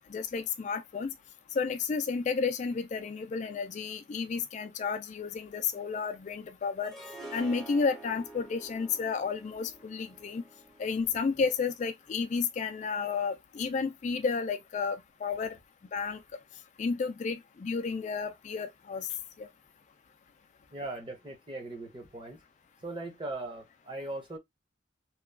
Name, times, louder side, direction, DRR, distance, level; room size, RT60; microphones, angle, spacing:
voice 1, 0.1-1.1 1.5-6.9 7.3-10.4 10.8-15.6 15.9-16.2 16.8-19.1 19.4-19.5, left 5 dB, 40° left, 0.3 m, -32 dB
Harp, 6.8-11.9, right 2 dB, ahead, 0.6 m, -49 dB
voice 2, 20.7-22.4 22.8-24.4, right 2 dB, 30° right, 0.8 m, -39 dB
2.9 x 2.3 x 2.2 m
head